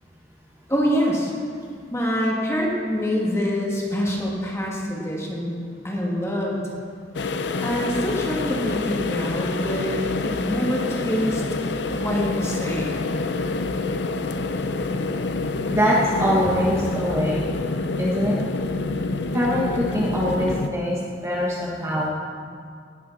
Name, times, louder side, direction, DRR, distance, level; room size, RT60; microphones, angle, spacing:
voice 1, 0.7-1.3 1.9-5.6 5.8-6.6 7.6-11.4 11.9-13.1, equal, 15° left, -3 dB, 2.2 m, -25 dB
sound 1, 7.1-20.7, left 3 dB, 90° left, 0.6 m, -27 dB
voice 2, 15.7-17.4 18.0-18.4 19.3-21.0 21.2-22.1, equal, 15° right, -5 dB, 1.4 m, -23 dB
19.0 x 8.7 x 4.2 m, 2.2 s
head